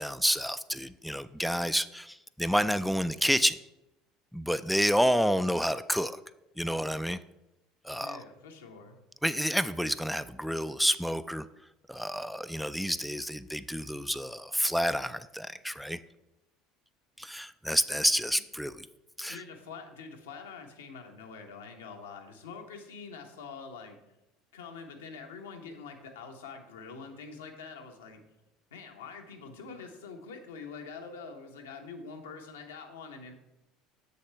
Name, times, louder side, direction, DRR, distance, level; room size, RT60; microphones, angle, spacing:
voice 1, 0.0-3.6 4.3-6.2 6.6-7.2 7.8-8.2 9.2-11.5 11.9-16.0 17.2-18.9 19.2-19.4, equal, ahead, 12 dB, 0.3 m, -29 dB
voice 2, 8.0-9.0 19.3-24.0 24.5-28.2 28.7-33.3, left 5 dB, 80° left, 3 dB, 1.0 m, -45 dB
7.2 x 6.7 x 3.3 m, 0.94 s
hypercardioid pair, 70°, 0 cm